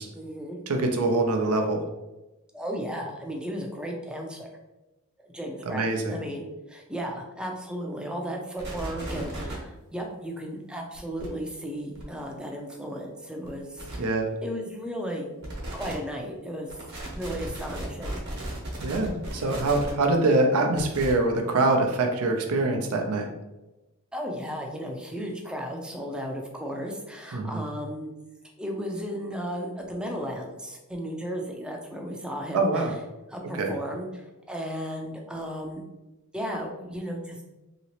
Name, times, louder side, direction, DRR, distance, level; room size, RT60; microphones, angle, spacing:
voice 1, 0.1-0.6 2.5-4.5 5.2-5.8 6.1-14.1 14.4-15.3 15.7-16.7 17.1-18.2 24.1-28.1 28.6-32.9 33.3-35.8 36.3-37.4, equal, 5° right, 0 dB, 0.4 m, -35 dB
voice 2, 0.7-1.8 5.7-6.2 14.0-14.3 18.8-23.3 27.3-27.6 32.5-32.9 33.5-33.7, right 2 dB, 85° right, 3 dB, 0.6 m, -24 dB
sound 1, 8.6-9.5 10.9-11.3 11.9-12.0 13.4-13.5 13.8-14.0 15.4-15.9 16.7-19.9 20.8-21.1, right 1 dB, 55° right, 1.1 m, -36 dB
2.9 x 2.9 x 2.9 m, 1.0 s
head